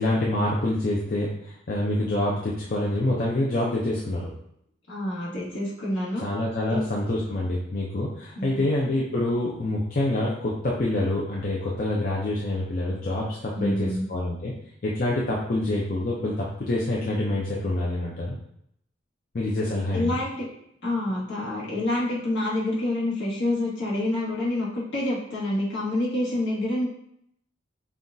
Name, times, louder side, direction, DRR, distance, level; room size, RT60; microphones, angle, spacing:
voice 1, 0.0-4.3 6.2-14.5 14.8-18.4 19.3-20.2, left 1 dB, 45° left, -4 dB, 0.5 m, -26 dB
voice 2, 4.9-6.3 6.7-6.8 8.3-8.6 13.5-14.1 19.9-20.5 20.8-26.9, left 1 dB, 70° left, -7 dB, 1.5 m, -27 dB
5.6 x 2.3 x 2.6 m, 0.72 s
head